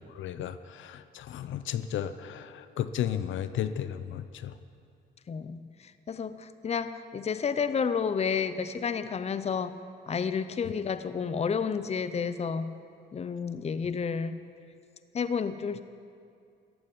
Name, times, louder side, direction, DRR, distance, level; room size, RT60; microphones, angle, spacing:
voice 1, 0.2-4.5, left 10 dB, 75° left, 12 dB, 0.7 m, -34 dB
voice 2, 5.3-9.7 10.1-12.7 13.1-14.4 15.1-15.8, left 6 dB, 35° left, 13 dB, 0.7 m, -31 dB
14.0 x 8.9 x 9.6 m, 2.4 s
cardioid pair, 90°, 20 cm